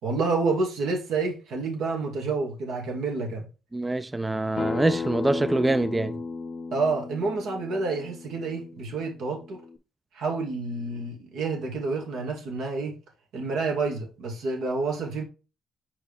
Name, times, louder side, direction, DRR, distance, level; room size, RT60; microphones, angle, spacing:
voice 1, 0.0-3.4 6.7-9.6 10.1-13.0 13.3-15.2, right 3 dB, 80° right, 2.3 m, -29 dB
voice 2, 3.7-6.2, right 2 dB, 15° right, 0.3 m, -25 dB
Acoustic guitar, 4.6-9.8, left 4 dB, 50° left, 0.6 m, -35 dB
5.6 x 4.9 x 3.4 m
cardioid pair, 90°, 0 cm